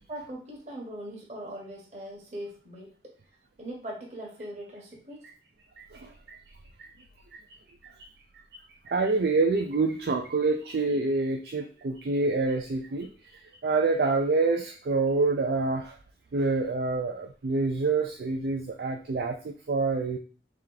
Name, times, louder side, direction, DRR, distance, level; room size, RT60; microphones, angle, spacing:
voice 1, 0.1-2.9 3.6-5.2, right 1 dB, 40° right, -2 dB, 1.1 m, -40 dB
voice 2, 5.8-6.4 6.8-6.9 7.8-8.1 8.9-13.1 13.6-16.0 16.3-20.2, right 3 dB, 65° right, 3 dB, 0.4 m, -27 dB
3.3 x 3.0 x 3.8 m, 0.38 s
head